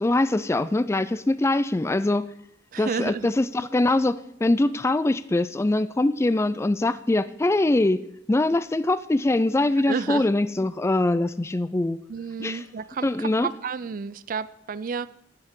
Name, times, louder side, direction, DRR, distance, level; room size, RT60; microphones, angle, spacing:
voice 1, 0.0-2.3 2.8-8.0 8.3-12.0 12.4-12.6 13.0-13.5, left 2 dB, 15° left, 14 dB, 0.3 m, -23 dB
voice 2, 2.7-3.3 9.9-10.3 12.1-15.1, right 5 dB, 50° right, 17 dB, 0.4 m, -31 dB
13.5 x 11.0 x 3.7 m, 0.73 s
head